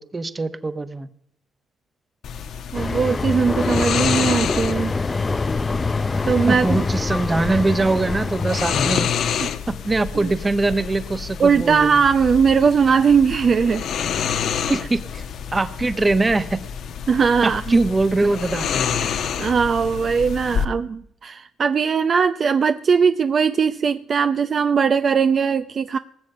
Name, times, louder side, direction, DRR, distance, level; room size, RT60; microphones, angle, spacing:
voice 1, 0.1-1.1 5.7-5.8 6.5-9.1 9.8-12.0 14.5-15.2 15.5-16.6 17.4-18.7, right 2 dB, 25° right, 12 dB, 1.2 m, -22 dB
sound 1, 2.2-20.7, left 7 dB, 70° left, 1.1 m, -28 dB
sound 2, 2.7-9.0, left 3 dB, 25° left, 0.5 m, -25 dB
voice 2, 2.7-4.9 6.3-6.8 9.4-9.5 11.4-13.8 17.1-17.8 19.0-26.0, right 6 dB, 45° right, 10 dB, 0.6 m, -19 dB
19.0 x 7.3 x 8.0 m, 0.72 s
cardioid pair, 90°, 0 cm